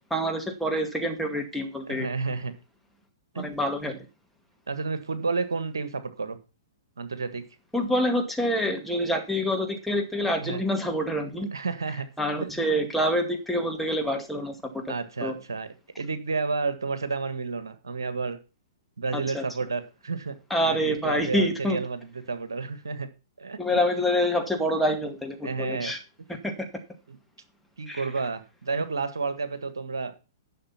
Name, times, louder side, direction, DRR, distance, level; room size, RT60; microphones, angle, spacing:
voice 1, 0.1-2.1 3.4-4.1 7.7-11.5 12.2-14.8 15.2-15.4 19.1-19.4 20.5-21.8 23.6-26.0 26.4-26.5 27.9-28.0, equal, ahead, 2 dB, 2.1 m, -26 dB
voice 2, 1.9-2.5 3.3-3.5 4.7-6.4 7.0-7.4 10.4-10.6 11.5-12.1 14.4-14.5 14.9-15.7 16.0-18.4 19.0-20.4 20.6-23.1 23.4-23.8 25.4-25.9 27.1-27.2 27.8-30.1, right 4 dB, 80° right, 10 dB, 1.6 m, -31 dB
11.5 x 6.4 x 5.8 m, 0.31 s
figure-of-eight pair, 115°, 2 cm